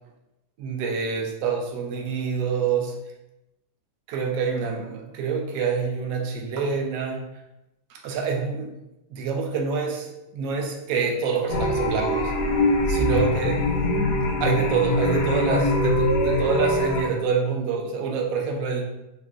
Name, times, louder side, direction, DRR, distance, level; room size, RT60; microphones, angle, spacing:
voice 1, 0.6-3.0 4.1-7.3 7.9-8.7 9.1-12.3 12.9-13.7 14.4-18.8, right 5 dB, 70° right, 2 dB, 0.8 m, -26 dB
sound 1, 11.5-17.0, left 1 dB, 70° left, 0.8 m, -23 dB
3.7 x 2.1 x 2.4 m, 0.93 s
omnidirectional pair, 1.8 m